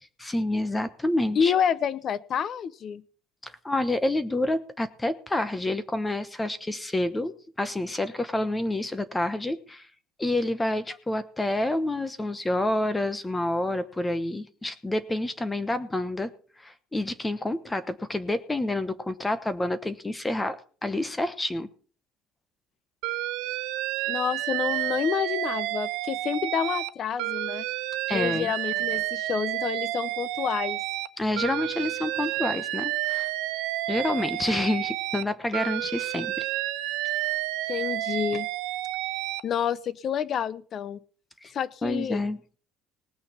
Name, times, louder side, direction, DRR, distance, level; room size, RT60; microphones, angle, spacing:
voice 1, 0.2-1.5 3.4-9.9 10.2-16.3 16.6-21.7 28.1-28.5 31.2-33.3 33.9-36.4 41.4-41.5 41.8-42.4, left 1 dB, 10° left, 13 dB, 1.1 m, -28 dB
voice 2, 1.3-3.0 24.1-27.6 28.1-30.8 37.7-38.5 39.4-41.0 41.5-42.2, left 8 dB, 45° left, 19 dB, 0.8 m, -28 dB
Alarm, 23.0-26.9 27.2-31.1 31.4-35.2 35.5-39.4, right 16 dB, 85° right, 1.1 m, -30 dB
18.5 x 6.6 x 7.2 m, 0.42 s
cardioid pair, 130°, 0 cm